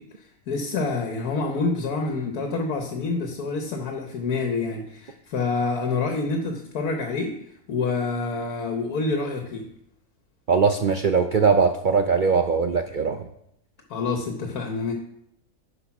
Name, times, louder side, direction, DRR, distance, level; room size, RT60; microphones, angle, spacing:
voice 1, 0.0-7.4 7.7-9.7 13.9-14.9, left 4 dB, 85° left, 3 dB, 1.6 m, -27 dB
voice 2, 10.5-13.3, right 5 dB, 65° right, 6 dB, 0.5 m, -21 dB
10.0 x 5.3 x 5.9 m, 0.75 s
omnidirectional pair, 1.6 m